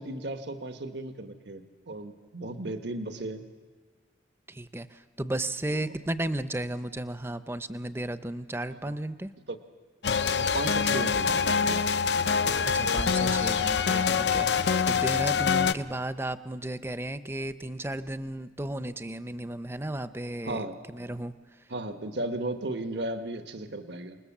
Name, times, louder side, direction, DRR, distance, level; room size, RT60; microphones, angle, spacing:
voice 1, 0.0-3.4 5.7-5.8 8.8-8.9 9.5-9.6 10.3-11.9 15.1-15.4 20.4-20.8 21.7-24.2, right 2 dB, 75° right, 8 dB, 1.3 m, -35 dB
voice 2, 4.5-9.3 12.6-21.3, right 1 dB, 15° right, 12 dB, 0.7 m, -34 dB
sound 1, 10.0-15.7, left 6 dB, 70° left, 0.7 m, -25 dB
27.5 x 20.5 x 7.3 m, 1.5 s
head